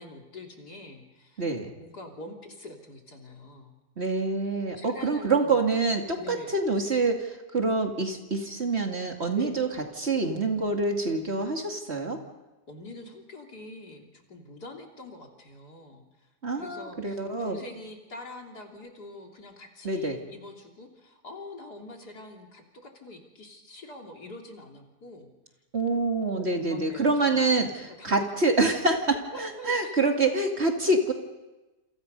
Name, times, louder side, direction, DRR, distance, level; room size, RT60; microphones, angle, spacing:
voice 1, 0.0-1.4 1.8-3.7 4.8-5.6 6.2-6.5 9.4-9.6 12.7-25.3 26.3-28.3 29.3-29.9, left 2 dB, 75° left, 1 dB, 3.7 m, -45 dB
voice 2, 1.4-1.7 4.0-9.7 10.0-12.2 16.4-17.6 19.8-20.2 25.7-31.1, right 3 dB, 40° right, 3 dB, 2.6 m, -26 dB
28.5 x 27.0 x 5.4 m, 1.1 s
omnidirectional pair, 1.7 m